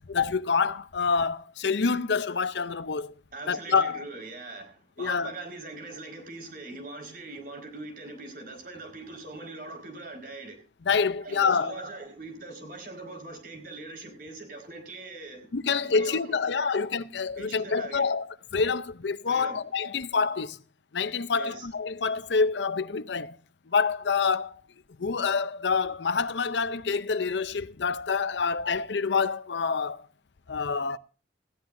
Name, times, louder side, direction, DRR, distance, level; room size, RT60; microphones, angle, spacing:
voice 1, 0.0-3.1 3.5-4.0 5.0-5.3 10.9-11.7 15.5-20.6 20.9-23.4 23.7-24.6 25.0-30.1 30.5-31.0, left 5 dB, 70° left, 0.6 m, -27 dB
voice 2, 3.3-10.6 11.2-16.8 17.4-18.1 19.3-19.6 21.3-21.7, right 2 dB, 50° right, 4.7 m, -42 dB
18.5 x 15.0 x 2.6 m
head